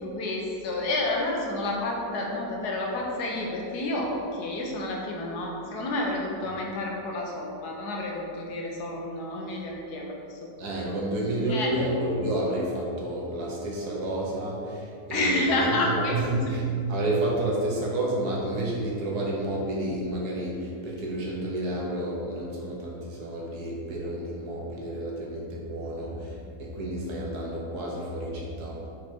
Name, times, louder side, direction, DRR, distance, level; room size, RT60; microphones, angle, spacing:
voice 1, 0.0-10.4 10.8-11.0 11.5-11.7 15.1-16.6, left 2 dB, 75° left, -1 dB, 1.4 m, -30 dB
voice 2, 10.6-16.6 16.9-28.9, right 1 dB, 70° right, -3 dB, 1.6 m, -30 dB
4.8 x 4.7 x 4.4 m, 2.5 s
omnidirectional pair, 1.7 m